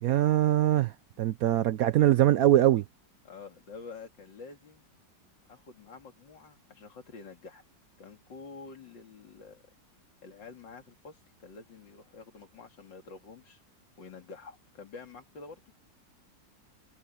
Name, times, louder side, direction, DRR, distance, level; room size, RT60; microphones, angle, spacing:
voice 1, 0.0-2.8, right 13 dB, 70° right, 0.9 m, -23 dB
voice 2, 3.2-4.8 5.5-7.6 8.0-9.6 10.2-13.6 14.0-15.6, left 4 dB, 90° left, 3.2 m, -48 dB
omnidirectional pair, 1.9 m